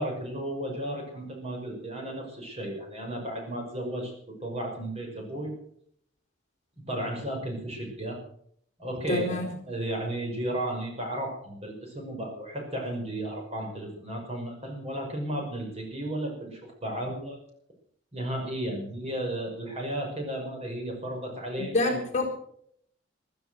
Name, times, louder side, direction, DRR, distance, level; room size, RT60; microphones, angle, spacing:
voice 1, 0.0-5.5 6.9-8.2 8.8-9.4 9.7-17.4 18.1-22.0, right 1 dB, 35° right, 1 dB, 5.6 m, -34 dB
voice 2, 9.1-9.5 21.6-22.3, left 2 dB, 40° left, 1 dB, 4.0 m, -27 dB
15.0 x 13.5 x 6.4 m, 0.66 s
head